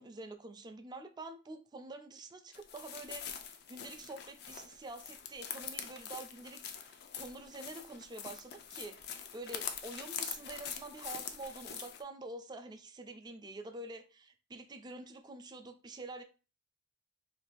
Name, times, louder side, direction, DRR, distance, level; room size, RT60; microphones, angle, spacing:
voice 1, 0.0-16.2, right 2 dB, 25° right, 0.4 m, -47 dB
sound 1, 2.5-12.0, left 8 dB, 60° left, 0.4 m, -44 dB
2.6 x 2.4 x 3.9 m
head